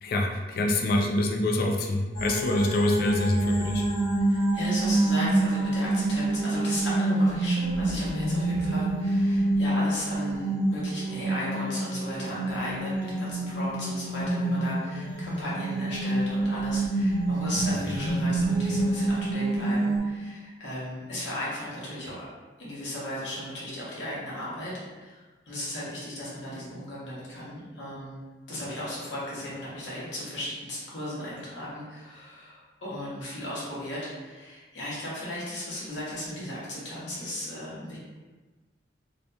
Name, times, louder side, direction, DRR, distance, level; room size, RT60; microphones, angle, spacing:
voice 1, 0.0-3.9, left 1 dB, 55° left, 2 dB, 0.3 m, -25 dB
sound 1, 2.1-20.0, right 2 dB, 35° left, 1.0 m, -27 dB
voice 2, 4.3-22.1 22.6-24.7 25.0-28.2 28.5-38.0, left 1 dB, 85° left, -7 dB, 0.9 m, -36 dB
2.7 x 2.3 x 2.2 m, 1.3 s
head